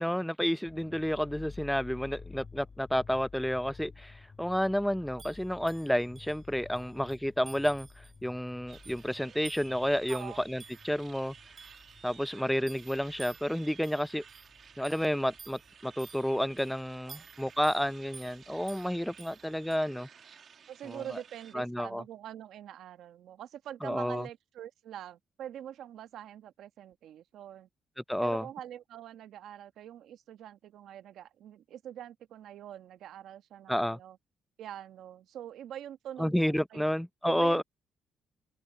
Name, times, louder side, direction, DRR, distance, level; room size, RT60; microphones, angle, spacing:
voice 1, 0.0-11.3 12.0-14.2 14.8-20.1 20.9-21.0 21.5-22.0 23.8-24.3 28.1-28.5 33.7-34.0 36.2-37.6, equal, 5° left, 0.5 m, -30 dB
sound 1, 0.7-15.8 16.0-17.1 17.5-17.6 17.9-18.6, left 4 dB, 35° left, 2.4 m, -52 dB
sound 2, 5.2-19.8, right 5 dB, 40° right, 2.2 m, -55 dB
sound 3, 8.7-21.5, right 7 dB, 55° right, 1.5 m, -55 dB
voice 2, 10.1-10.4 17.1-17.3 20.7-27.7 28.2-34.2 34.6-36.9 37.2-37.6, right 10 dB, 75° right, 1.4 m, -45 dB
cardioid pair, 90°, 0 cm